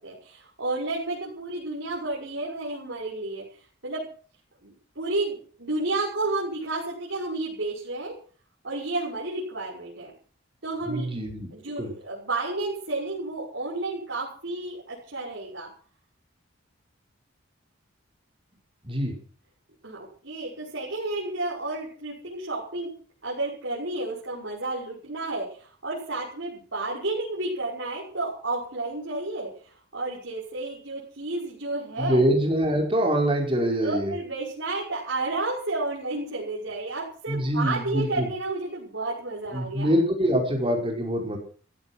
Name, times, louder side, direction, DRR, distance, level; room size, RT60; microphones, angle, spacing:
voice 1, 0.0-3.4 3.8-4.0 4.6-8.1 8.6-10.1 10.6-11.1 11.5-15.7 19.8-22.9 23.2-32.2 33.8-39.9, right 2 dB, 65° right, -5 dB, 6.0 m, -31 dB
voice 2, 10.9-11.5 11.8-11.9 18.8-19.1 32.0-34.1 37.3-38.3 39.5-41.4, equal, 25° right, 1 dB, 5.3 m, -24 dB
16.0 x 14.5 x 6.2 m, 0.43 s
head